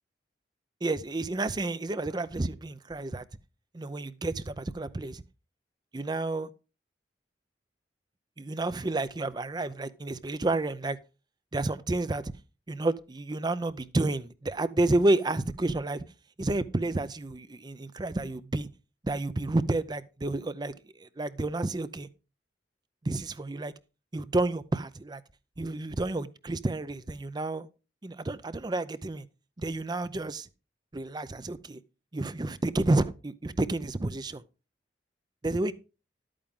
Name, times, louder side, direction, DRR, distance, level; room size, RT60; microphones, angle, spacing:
voice 1, 0.8-3.2 3.7-5.2 5.9-6.5 8.4-11.0 11.5-12.3 12.7-16.0 16.4-18.7 19.0-22.1 23.0-23.7 24.1-25.2 25.6-27.7 28.0-29.3 29.6-30.5 30.9-31.8 32.1-34.4 35.4-35.7, right 2 dB, 25° right, 0.5 m, -30 dB
12.0 x 8.7 x 3.6 m
head